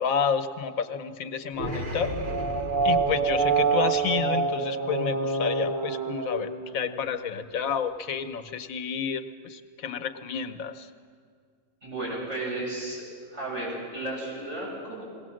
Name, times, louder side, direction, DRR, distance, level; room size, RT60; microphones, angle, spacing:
voice 1, 0.0-2.1 2.8-10.9, left 7 dB, 85° left, 10 dB, 1.3 m, -30 dB
sound 1, 1.6-7.1, right 4 dB, 40° right, 1.5 m, -27 dB
voice 2, 11.8-13.0 13.3-15.0, right 2 dB, 55° right, -5 dB, 8.1 m, -33 dB
20.5 x 17.5 x 7.6 m, 2.1 s
omnidirectional pair, 1.4 m